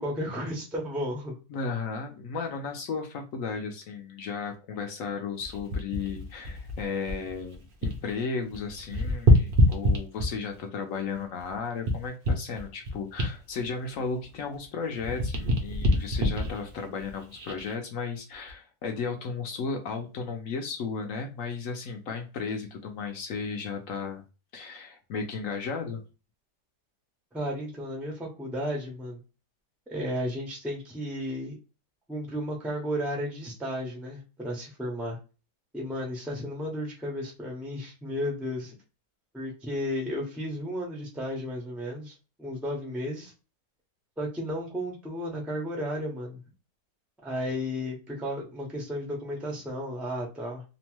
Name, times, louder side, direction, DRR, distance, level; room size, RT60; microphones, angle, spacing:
voice 1, 0.0-1.3 27.3-29.2 29.9-31.6 32.1-35.2 35.7-38.7 39.3-43.3 44.2-46.4 47.2-50.6, equal, ahead, -1 dB, 0.3 m, -33 dB
voice 2, 1.5-24.2 24.5-26.0, left 5 dB, 70° left, 4 dB, 0.8 m, -34 dB
sound 1, 5.4-8.1 8.4-10.6 11.1-14.7 14.9-17.7 18.3-18.5, left 1 dB, 55° right, 0.6 m, -26 dB
2.9 x 2.1 x 3.0 m, 0.32 s
omnidirectional pair, 1.8 m